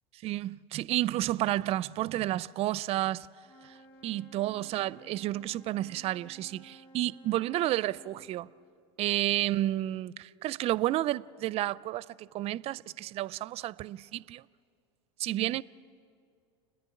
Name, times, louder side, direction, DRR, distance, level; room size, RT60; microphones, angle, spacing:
voice 1, 0.2-3.3 3.6-3.7 4.0-8.5 9.0-14.4 15.2-15.6, right 15 dB, 40° right, 0.4 m, -31 dB
Wind instrument woodwind instrument, 3.4-8.3, right 1 dB, 40° left, 4.7 m, -56 dB
29.5 x 10.5 x 8.4 m
hypercardioid pair, 85°, 15 cm